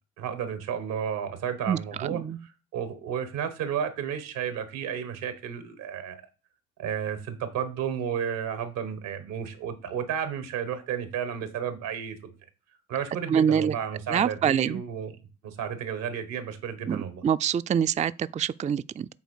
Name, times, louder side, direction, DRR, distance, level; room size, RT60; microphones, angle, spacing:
voice 1, 0.2-6.2 6.8-12.2 12.9-15.1 15.4-17.2, right 8 dB, 90° right, 1.4 m, -32 dB
voice 2, 1.7-2.4 13.3-13.7 14.1-14.8 16.9-19.1, right 8 dB, 25° right, 0.3 m, -25 dB
8.3 x 3.7 x 6.4 m
supercardioid pair, 50°, 33 cm